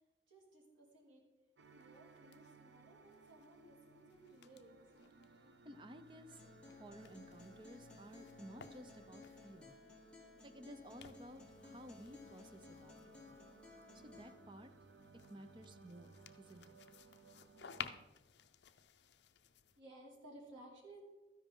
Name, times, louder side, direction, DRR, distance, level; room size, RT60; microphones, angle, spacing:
voice 1, 0.3-1.2 1.8-4.7 19.8-21.0, right 1 dB, 90° right, -2 dB, 2.9 m, -58 dB
sound 1, 1.6-9.8 10.7-19.8, left 7 dB, 65° left, 0.5 m, -57 dB
sound 2, 1.6-18.1, right 3 dB, 70° right, 0.6 m, -63 dB
voice 2, 5.6-9.8 10.4-13.4 13.9-14.7 15.3-16.8, right 1 dB, 25° right, 9 dB, 0.6 m, -55 dB
Acoustic guitar, 6.3-14.3, left 3 dB, 5° left, 1.9 m, -58 dB
13.0 x 10.0 x 3.7 m, 1.2 s
head